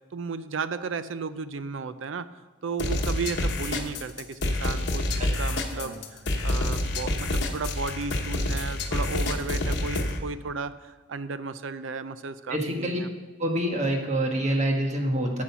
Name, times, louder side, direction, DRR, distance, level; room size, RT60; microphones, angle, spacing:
voice 1, 0.1-2.3 2.6-13.1, right 4 dB, 65° right, 13 dB, 0.5 m, -34 dB
sound 1, 2.8-10.2, left 1 dB, 55° left, 1.1 m, -27 dB
voice 2, 12.5-13.0 13.4-15.4, right 1 dB, 35° right, 2 dB, 1.4 m, -26 dB
9.9 x 7.8 x 5.7 m, 1.3 s
head